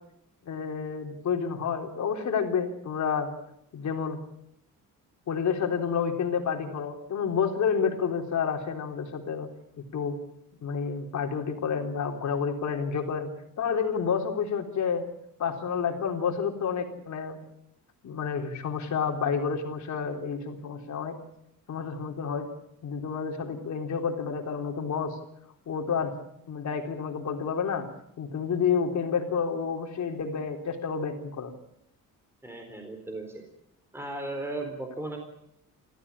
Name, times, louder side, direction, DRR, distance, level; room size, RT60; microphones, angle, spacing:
voice 1, 0.5-3.3 3.7-4.2 5.3-9.5 9.8-10.2 10.6-13.3 13.6-15.0 15.4-17.4 18.0-21.2 21.7-22.5 22.8-25.2 25.7-26.1 26.5-27.9 28.2-31.5, left 6 dB, 55° left, 3 dB, 3.7 m, -29 dB
voice 2, 32.4-33.4 33.9-35.2, right 2 dB, 5° right, 4 dB, 4.1 m, -36 dB
29.5 x 14.5 x 8.6 m, 0.77 s
cardioid pair, 140°, 33 cm